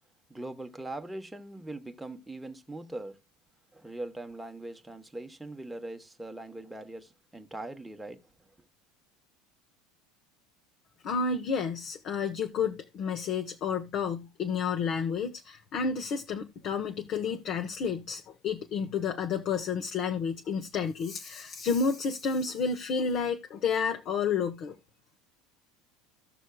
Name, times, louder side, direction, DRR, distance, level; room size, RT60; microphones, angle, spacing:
voice 1, 0.3-3.2 3.7-8.2, right 2 dB, 5° right, 1.2 m, -41 dB
voice 2, 11.0-24.8, left 5 dB, 40° left, 1.0 m, -30 dB
16.0 x 6.2 x 2.3 m
supercardioid pair, 145°, 0 cm